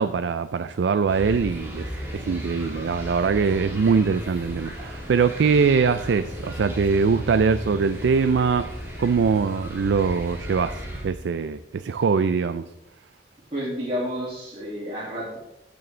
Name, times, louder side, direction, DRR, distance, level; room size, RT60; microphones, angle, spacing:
voice 1, 0.0-8.7 9.0-12.6, right 5 dB, 85° right, 11 dB, 0.4 m, -22 dB
sound 1, 1.1-11.0, equal, 15° right, 2.1 m, -35 dB
sound 2, 1.4-11.1, left 1 dB, 45° left, 2.5 m, -44 dB
voice 2, 13.5-15.4, equal, 30° right, -7 dB, 2.4 m, -30 dB
13.5 x 6.2 x 3.3 m, 0.88 s
head